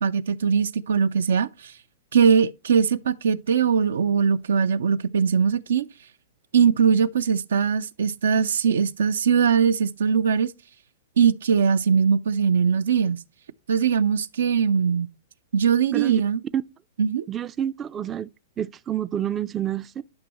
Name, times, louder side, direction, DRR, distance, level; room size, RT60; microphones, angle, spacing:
voice 1, 0.0-1.7 2.1-5.9 6.5-10.5 11.2-13.2 13.7-15.1 15.5-16.4 17.0-17.3, right 6 dB, 90° right, 0.5 m, -21 dB
voice 2, 17.3-18.3 18.6-20.0, right 10 dB, 20° right, 0.3 m, -28 dB
11.5 x 5.4 x 2.9 m
hypercardioid pair, 145°, 0 cm